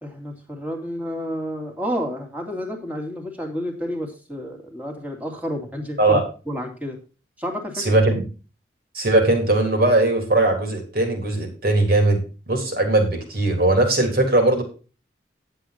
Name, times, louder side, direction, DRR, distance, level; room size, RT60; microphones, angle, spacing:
voice 1, 0.0-6.2 6.5-7.0 7.4-7.9, equal, 10° right, 1 dB, 2.6 m, -30 dB
voice 2, 7.8-8.2 8.9-12.2 12.5-14.6, right 2 dB, 55° right, 4 dB, 3.5 m, -19 dB
11.0 x 7.9 x 4.3 m, 0.34 s
head